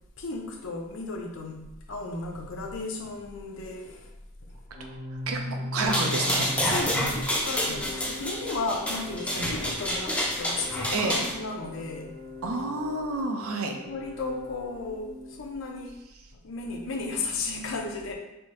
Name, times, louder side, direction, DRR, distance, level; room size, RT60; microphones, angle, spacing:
voice 1, 0.2-1.6 1.9-4.1 5.5-5.6 6.6-12.1 13.9-16.0 16.4-18.1, left 3 dB, 60° left, 2 dB, 0.6 m, -34 dB
Organ, 4.7-15.5, left 2 dB, 35° right, 0.6 m, -40 dB
voice 2, 5.3-6.8 7.7-7.8 9.3-9.5 10.9-11.2 12.4-13.7, right 2 dB, 75° right, 3 dB, 0.5 m, -30 dB
sound 1, 5.8-11.3, equal, 5° left, 0.5 m, -28 dB
3.4 x 2.7 x 2.9 m, 0.97 s
head